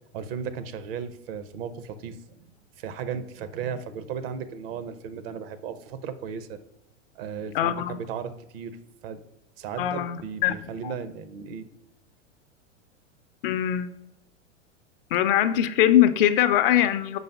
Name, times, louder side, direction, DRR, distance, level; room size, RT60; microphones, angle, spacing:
voice 1, 0.1-2.2 2.8-6.6 7.2-8.8 9.0-9.2 9.6-11.7, right 7 dB, 50° right, 12 dB, 0.7 m, -35 dB
voice 2, 7.5-8.0 9.8-10.5 10.8-10.9 13.4-14.0 15.1-17.2, left 11 dB, 50° left, 11 dB, 0.5 m, -22 dB
5.1 x 4.0 x 5.7 m, 0.86 s
hypercardioid pair, 105°, 37 cm